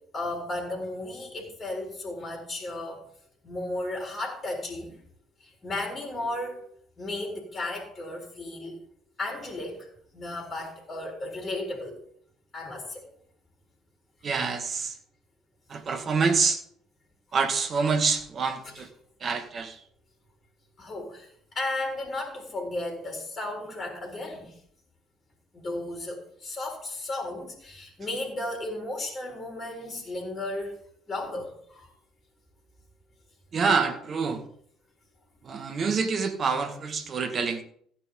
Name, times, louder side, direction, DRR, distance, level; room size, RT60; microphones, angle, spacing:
voice 1, 0.1-3.1 3.4-5.0 5.4-6.7 7.0-8.8 9.2-9.9 10.1-12.0 12.5-13.1 20.8-21.3 21.5-24.6 25.5-30.8 31.1-31.9, left 2 dB, 30° left, 0 dB, 4.3 m, -34 dB
voice 2, 14.2-15.0 15.7-16.6 17.3-18.9 19.2-19.8 33.5-34.4 35.4-37.6, right 5 dB, 40° right, 6 dB, 2.1 m, -26 dB
15.5 x 9.1 x 4.0 m, 0.63 s
figure-of-eight pair, 55°, 0 cm